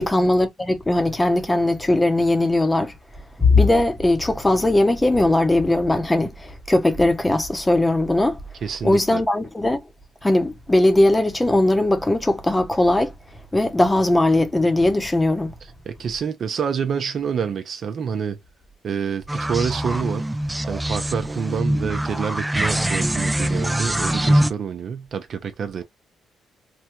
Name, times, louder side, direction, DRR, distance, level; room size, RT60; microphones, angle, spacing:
voice 1, 0.0-2.9 3.4-8.4 8.8-9.8 10.2-13.1 13.5-15.5, left 2 dB, 15° left, 0.8 m, -19 dB
voice 2, 8.6-9.2 15.9-18.4 18.8-20.2 20.7-25.8, right 7 dB, 55° right, 0.7 m, -27 dB
sound 1, 19.3-24.5, right 1 dB, 10° right, 0.4 m, -23 dB
3.5 x 2.2 x 3.0 m
cardioid pair, 90°, 0 cm